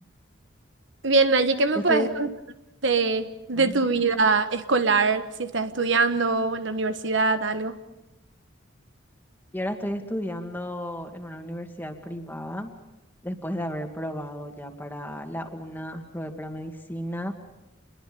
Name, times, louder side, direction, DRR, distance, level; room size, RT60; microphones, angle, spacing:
voice 1, 1.0-2.3 2.8-7.7, right 4 dB, 70° right, 9 dB, 1.3 m, -23 dB
voice 2, 1.7-2.1 3.5-3.9 9.5-12.7 13.2-17.3, equal, 10° left, 3 dB, 2.4 m, -33 dB
28.5 x 22.5 x 5.4 m, 0.94 s
head